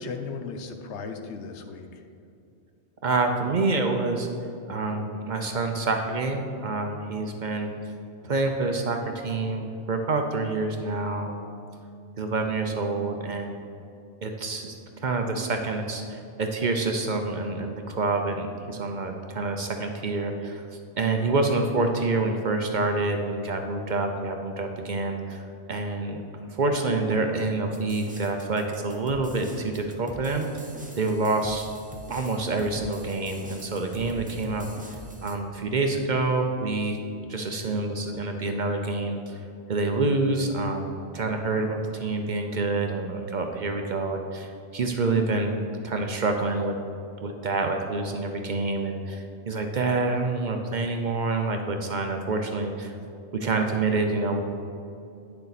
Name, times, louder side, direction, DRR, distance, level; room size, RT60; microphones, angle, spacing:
voice 1, 0.0-2.0, left 4 dB, 80° left, 6 dB, 1.0 m, -36 dB
voice 2, 3.0-4.3 4.7-7.7 8.2-11.6 12.2-13.6 14.2-30.5 31.0-31.7 32.1-37.0 37.3-39.4 39.7-45.6 45.8-46.8 47.2-52.9 53.3-54.4, right 3 dB, 50° right, 4 dB, 0.7 m, -27 dB
sound 1, 27.7-35.4, equal, 10° right, 0.6 m, -44 dB
9.5 x 6.7 x 4.1 m, 2.6 s
omnidirectional pair, 1.2 m